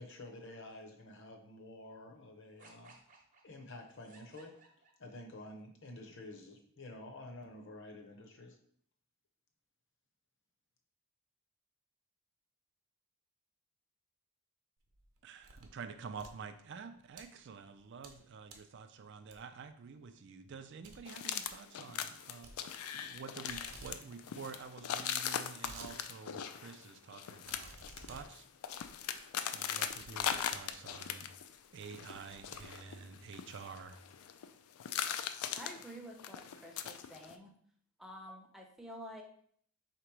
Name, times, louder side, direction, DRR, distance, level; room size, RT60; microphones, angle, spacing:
voice 1, 0.0-2.9 3.4-4.5 5.0-8.6, left 2 dB, 55° left, 2 dB, 0.8 m, -50 dB
sound 1, 2.6-5.4, right 3 dB, 35° right, 0.8 m, -61 dB
sound 2, 14.8-15.8 16.1-17.2 17.7-18.2 18.5-18.8 19.3-19.7 20.1-20.2 20.5-20.6 20.8-21.0 21.3-21.6 22.4-23.2 23.5-24.0 24.3-24.4 24.6-24.7 25.2-25.9 26.4-26.5 27.4-30.9 31.5-31.6 31.9-33.2, right 3 dB, 85° right, 0.7 m, -54 dB
voice 2, 15.2-28.5 29.5-31.3 31.7-34.0, right 5 dB, 55° right, 9 dB, 0.4 m, -49 dB
sound 3, 21.1-31.6 31.8-34.5 34.8-37.3, left 9 dB, 80° left, 0.4 m, -40 dB
voice 3, 35.5-37.5 38.0-39.2, equal, ahead, 0 dB, 0.5 m, -49 dB
3.8 x 2.9 x 4.6 m, 0.62 s
head